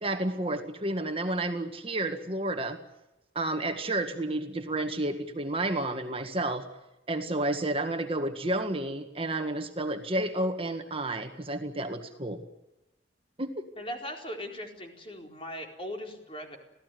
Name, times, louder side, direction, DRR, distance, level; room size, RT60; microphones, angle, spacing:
voice 1, 0.0-2.8 3.4-6.7 7.1-12.4 13.4-13.7, right 1 dB, 30° right, 6 dB, 1.7 m, -31 dB
voice 2, 13.8-16.6, equal, 30° left, 3 dB, 4.4 m, -39 dB
26.0 x 17.0 x 9.3 m, 0.94 s
head